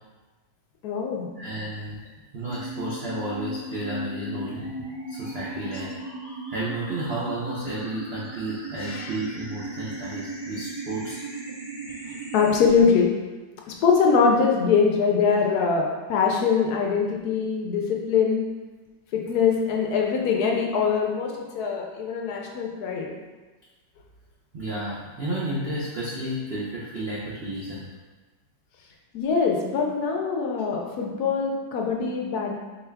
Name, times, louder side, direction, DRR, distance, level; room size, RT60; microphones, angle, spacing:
voice 1, 0.8-1.3 8.8-9.1 12.3-13.1 13.7-18.5 19.1-23.1 29.1-32.6, left 5 dB, 70° left, 0 dB, 1.0 m, -23 dB
voice 2, 1.4-2.0 2.3-5.9 6.5-11.2 24.5-27.9, right 1 dB, 80° right, -7 dB, 0.5 m, -32 dB
sound 1, 2.5-12.5, right 1 dB, 15° right, 1.1 m, -36 dB
4.3 x 2.3 x 3.3 m, 1.3 s
omnidirectional pair, 1.9 m